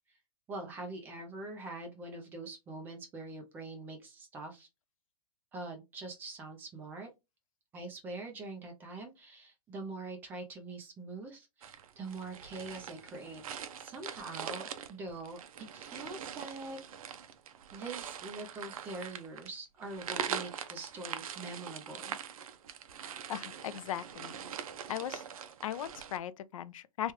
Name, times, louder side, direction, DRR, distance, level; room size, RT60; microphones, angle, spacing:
voice 1, 0.5-4.7 5.5-7.1 7.7-13.4 13.8-16.8 17.7-22.1, right 2 dB, 10° right, 0.4 m, -44 dB
sound 1, 11.6-26.2, right 8 dB, 65° right, 0.6 m, -43 dB
voice 2, 23.3-24.4 24.9-25.2 25.6-27.1, left 10 dB, 60° left, 0.4 m, -38 dB
3.1 x 2.3 x 2.8 m
hypercardioid pair, 160°, 19 cm